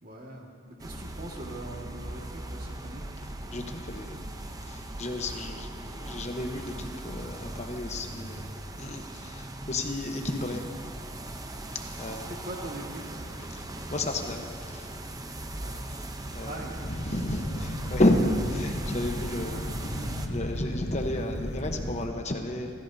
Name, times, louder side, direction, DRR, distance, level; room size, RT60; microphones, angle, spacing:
voice 1, 0.0-3.1 12.3-13.3 15.6-15.8 16.4-16.8, right 1 dB, 45° right, -1 dB, 1.9 m, -42 dB
sound 1, 0.8-20.3, right 1 dB, 20° right, 0.7 m, -40 dB
voice 2, 3.5-4.3 4.7-8.5 8.8-10.6 12.0-12.4 13.5-15.0 15.9-16.0 16.3-16.6 16.9-19.7 19.9-22.7, left 1 dB, 35° left, 4 dB, 1.0 m, -31 dB
Fire, 16.8-22.1, equal, 65° left, 1.7 m, -34 dB
29.0 x 14.5 x 2.8 m, 2.2 s
head